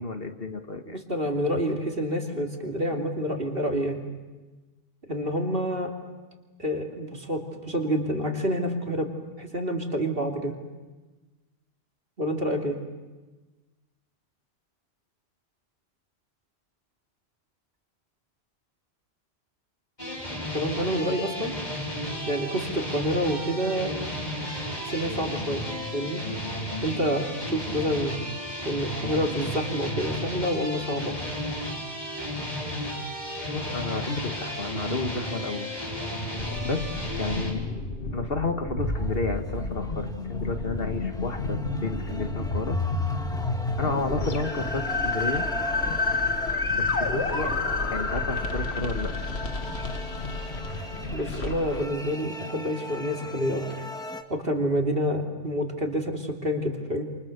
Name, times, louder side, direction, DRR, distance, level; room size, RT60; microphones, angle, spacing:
voice 1, 0.0-1.0 33.5-35.7 36.7-37.6 38.1-42.8 43.6-45.5 46.7-47.5 47.9-49.1, left 3 dB, 65° left, 6 dB, 2.0 m, -31 dB
voice 2, 0.8-4.0 5.1-5.9 6.6-9.1 9.4-10.5 12.2-12.8 20.5-21.5 22.3-23.9 24.8-25.7 25.9-26.2 26.8-28.1 28.6-31.2 51.1-53.7 54.3-57.0, equal, 60° right, 2 dB, 3.2 m, -28 dB
sound 1, 20.0-37.5, left 1 dB, 45° left, 4.9 m, -33 dB
sound 2, 36.4-51.8, left 3 dB, 90° left, 2.2 m, -30 dB
sound 3, 38.8-54.2, left 1 dB, 5° left, 1.7 m, -40 dB
28.5 x 28.0 x 6.7 m, 1.2 s
omnidirectional pair, 1.1 m